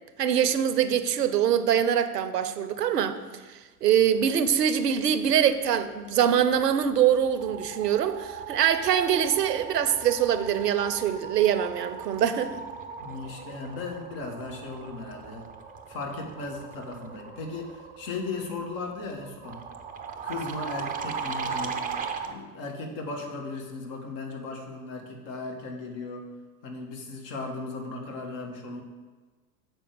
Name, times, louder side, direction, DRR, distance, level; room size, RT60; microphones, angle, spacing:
voice 1, 0.2-3.2 3.5-12.6, right 9 dB, 80° right, 11 dB, 0.7 m, -24 dB
sound 1, 6.5-6.8 7.1-22.4, right 6 dB, 20° right, 0.6 m, -38 dB
voice 2, 13.0-15.5 15.9-19.6 20.2-21.8 22.3-26.3 26.6-28.8, left 3 dB, 45° left, 2 dB, 1.7 m, -36 dB
6.9 x 4.7 x 6.8 m, 1.4 s
hypercardioid pair, 85°, 47 cm